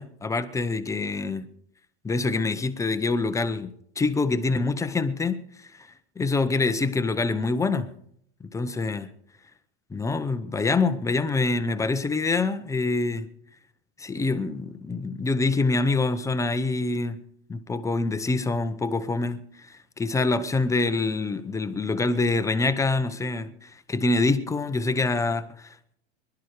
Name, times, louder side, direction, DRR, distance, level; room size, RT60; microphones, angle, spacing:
voice 1, 0.0-1.5 2.0-5.9 6.2-7.9 8.5-9.1 9.9-13.3 14.0-17.2 17.5-26.0, left 3 dB, 10° left, 0.8 m, -26 dB
20.5 x 11.5 x 4.8 m
supercardioid pair, 130°, 32 cm